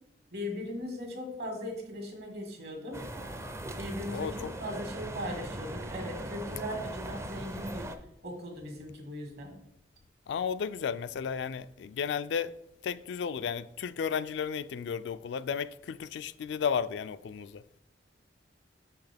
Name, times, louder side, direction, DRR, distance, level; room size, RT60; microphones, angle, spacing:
voice 1, 0.3-3.0 3.8-7.9 8.2-9.6, equal, 65° right, 1.7 m, -38 dB
sound 1, 2.9-8.0, right 1 dB, 15° right, 0.4 m, -39 dB
voice 2, 4.1-4.5 10.3-12.6 12.8-17.6, left 7 dB, 70° left, 0.3 m, -33 dB
6.5 x 5.7 x 3.4 m
head